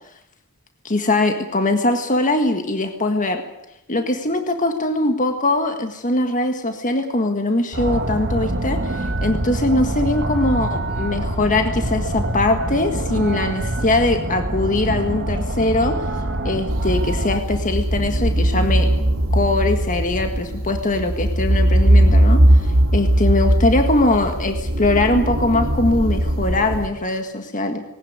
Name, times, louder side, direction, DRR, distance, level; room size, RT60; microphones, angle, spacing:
voice 1, 0.8-3.4 3.9-18.9 19.3-27.8, left 2 dB, 35° left, 6 dB, 1.7 m, -21 dB
sound 1, 7.7-17.4, right 1 dB, 50° right, 1.9 m, -25 dB
sound 2, 16.7-26.9, right 1 dB, 70° right, 2.8 m, -19 dB
20.0 x 18.0 x 9.6 m, 0.84 s
head